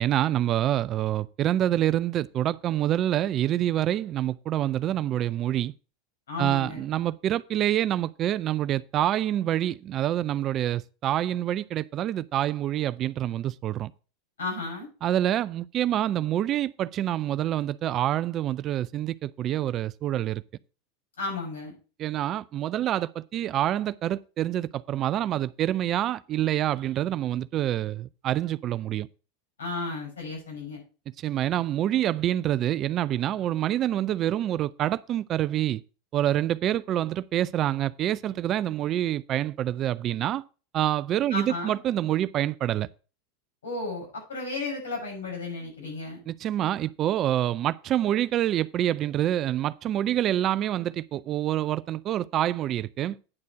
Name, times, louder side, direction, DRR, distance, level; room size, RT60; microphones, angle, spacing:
voice 1, 0.0-5.7 6.4-13.9 15.0-20.4 22.0-29.1 31.2-35.8 36.1-40.4 40.7-42.9 46.3-53.2, right 12 dB, 40° right, 0.4 m, -26 dB
voice 2, 6.3-6.8 14.4-14.9 21.2-21.7 29.6-30.8 41.3-41.8 43.6-46.2, left 3 dB, 90° left, 6.0 m, -33 dB
9.7 x 4.4 x 6.1 m
hypercardioid pair, 105°, 0 cm